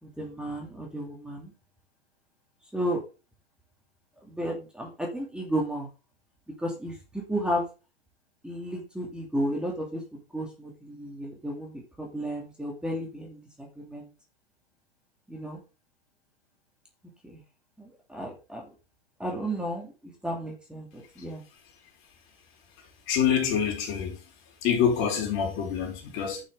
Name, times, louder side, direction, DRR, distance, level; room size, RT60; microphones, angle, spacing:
voice 1, 0.0-1.5 2.7-3.0 4.2-5.9 6.6-7.7 8.4-14.1 15.3-15.6 17.2-17.4 17.8-18.7 19.2-21.4, equal, 5° right, 2.7 m, -33 dB
voice 2, 23.1-24.2 24.6-26.4, left 8 dB, 40° left, 4.7 m, -26 dB
11.0 x 6.5 x 3.8 m
hypercardioid pair, 125°, 30 cm